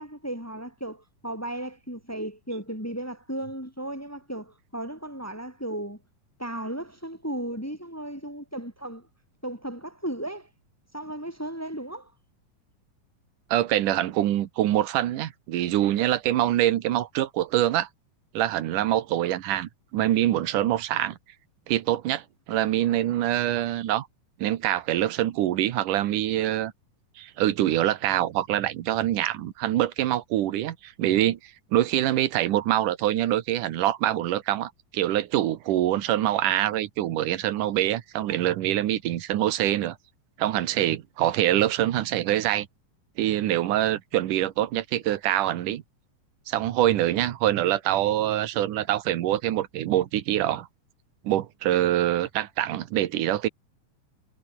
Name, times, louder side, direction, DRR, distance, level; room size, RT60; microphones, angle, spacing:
voice 1, 0.0-6.0 6.4-9.1 9.4-10.5 10.9-12.1, right 1 dB, 5° left, 3.9 m, -35 dB
voice 2, 13.5-17.9 18.3-21.2 21.7-24.1 24.4-26.7 27.2-31.4 31.7-40.0 40.4-42.7 43.2-45.8 46.5-50.7 51.2-53.5, right 13 dB, 75° right, 2.7 m, -25 dB
omnidirectional pair, 3.8 m